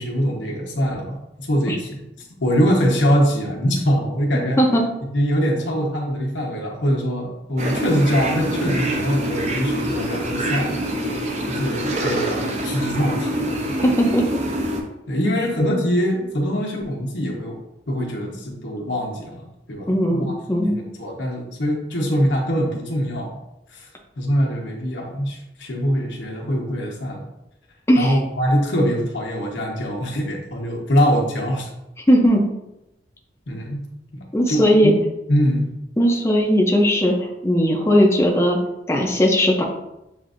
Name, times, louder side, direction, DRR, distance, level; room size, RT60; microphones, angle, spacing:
voice 1, 0.0-2.0 2.4-4.6 5.1-10.8 11.5-13.8 15.1-17.6 17.9-20.3 20.6-23.4 23.7-23.9 24.2-27.2 28.0-31.7 33.5-33.9 34.5-34.9 35.3-35.7, equal, 85° left, -1 dB, 1.1 m, -23 dB
sound 1, 7.6-14.8, right 1 dB, 40° right, 0.6 m, -25 dB
voice 2, 13.8-14.3 19.9-20.8 27.9-28.2 32.1-32.4 34.3-34.9 36.0-38.6 38.9-39.6, equal, 15° left, 0 dB, 0.5 m, -17 dB
7.2 x 2.6 x 2.5 m, 0.89 s
head